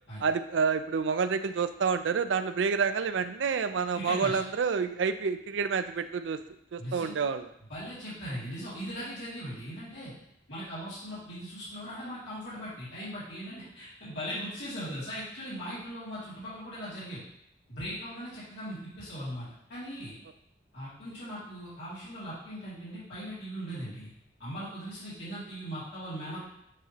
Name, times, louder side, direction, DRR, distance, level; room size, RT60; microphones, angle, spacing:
voice 1, 0.2-6.4 6.7-7.5, right 5 dB, 85° right, 11 dB, 0.4 m, -28 dB
voice 2, 3.9-4.4 6.8-7.2 7.7-10.1 10.5-17.2 17.7-20.2 20.7-24.1 24.4-26.4, equal, 75° left, -11 dB, 2.4 m, -39 dB
7.8 x 4.5 x 3.0 m, 0.77 s
head